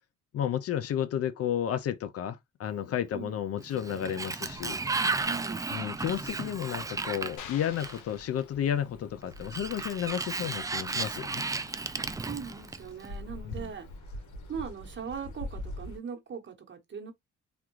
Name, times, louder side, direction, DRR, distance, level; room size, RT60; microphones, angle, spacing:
voice 1, 0.3-4.8 5.7-11.4 13.5-13.7, left 9 dB, 50° left, 0.4 m, -32 dB
Sliding door, 3.6-8.2 9.4-13.1, right 3 dB, 10° right, 0.3 m, -34 dB
sound 1, 4.4-16.0, left 1 dB, 70° left, 1.2 m, -46 dB
voice 2, 5.2-5.6 11.9-13.9 14.5-17.1, right 6 dB, 40° right, 1.1 m, -40 dB
sound 2, 7.4-9.1, left 8 dB, 85° left, 0.7 m, -47 dB
3.5 x 2.4 x 3.0 m
cardioid pair, 90°, 30 cm